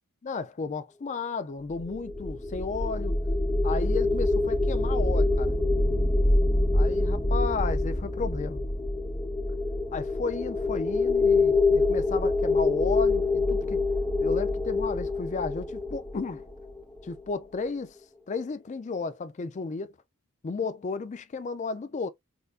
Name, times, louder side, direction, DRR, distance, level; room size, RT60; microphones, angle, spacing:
voice 1, 0.2-3.2 3.6-5.6 6.7-8.6 9.9-13.8 14.2-16.4 17.0-18.0 18.3-19.9 20.4-22.1, left 4 dB, 30° left, 0.4 m, -33 dB
sound 1, 1.8-17.0, left 2 dB, 10° left, 0.9 m, -25 dB
4.3 x 2.5 x 2.4 m
head